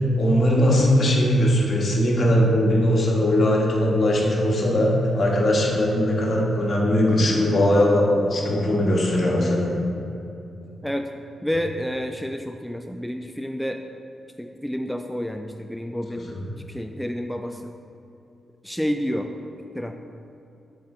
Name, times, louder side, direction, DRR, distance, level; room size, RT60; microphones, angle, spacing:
voice 1, 0.2-9.7 16.3-16.4, left 1 dB, 55° left, -2 dB, 1.4 m, -20 dB
voice 2, 11.4-13.8 14.4-16.3 16.7-17.7 18.6-19.3 19.7-20.0, equal, 5° left, 5 dB, 0.3 m, -29 dB
7.6 x 4.4 x 4.3 m, 2.7 s
cardioid pair, 70°, 0 cm